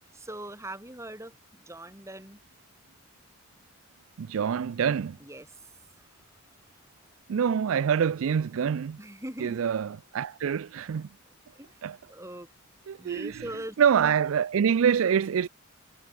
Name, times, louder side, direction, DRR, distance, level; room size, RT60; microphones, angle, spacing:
voice 1, 0.1-2.4 5.2-6.4 9.0-9.6 11.5-11.8 12.1-12.5 13.0-13.8, right 1 dB, 15° right, 4.2 m, -42 dB
voice 2, 4.2-5.2 7.3-9.0 9.4-11.1 11.8-12.0 12.9-13.5 13.8-15.5, right 7 dB, 65° right, 0.4 m, -25 dB
head